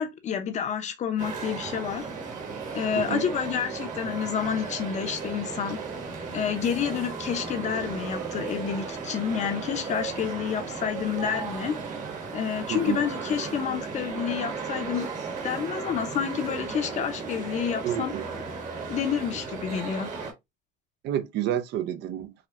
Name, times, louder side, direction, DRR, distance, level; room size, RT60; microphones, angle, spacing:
voice 1, 0.0-2.1 2.7-5.8 6.3-11.8 12.3-15.1 15.4-18.1 18.9-20.1, left 8 dB, 35° left, 0.7 m, -29 dB
sound 1, 1.2-20.3, right 5 dB, 40° right, 1.2 m, -35 dB
voice 2, 17.8-18.2 21.0-22.3, right 11 dB, 60° right, 0.6 m, -29 dB
4.9 x 2.3 x 2.7 m
cardioid pair, 155°, 20 cm